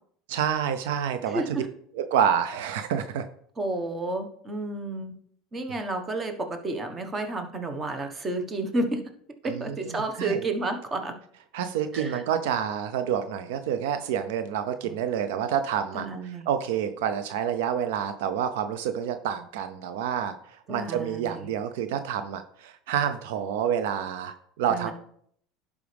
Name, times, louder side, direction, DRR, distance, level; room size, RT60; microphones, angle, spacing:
voice 1, 0.3-1.6 1.9-3.2 9.4-10.4 11.5-24.9, right 8 dB, 80° right, 10 dB, 0.6 m, -28 dB
voice 2, 1.2-1.7 3.6-5.1 5.5-9.0 9.4-11.1 11.9-12.2 14.8-14.9 15.9-16.5 20.7-21.5 24.7-24.9, right 2 dB, 25° right, 6 dB, 1.3 m, -31 dB
11.0 x 5.0 x 3.5 m, 0.65 s
supercardioid pair, 105°, 0 cm